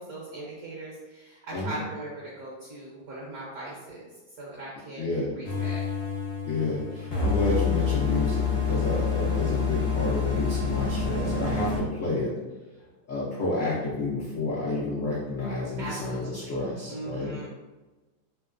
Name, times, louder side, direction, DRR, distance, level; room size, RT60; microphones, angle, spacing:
voice 1, 0.0-4.1 4.4-5.8 15.8-16.6 16.9-17.5, right 2 dB, 65° right, -5 dB, 1.0 m, -39 dB
voice 2, 5.0-5.3 6.5-12.3 13.1-17.5, left 2 dB, 85° left, -6 dB, 0.6 m, -30 dB
sound 1, 5.4-11.8, left 5 dB, 50° left, 0.7 m, -27 dB
3.2 x 2.9 x 2.4 m, 1.2 s
omnidirectional pair, 2.1 m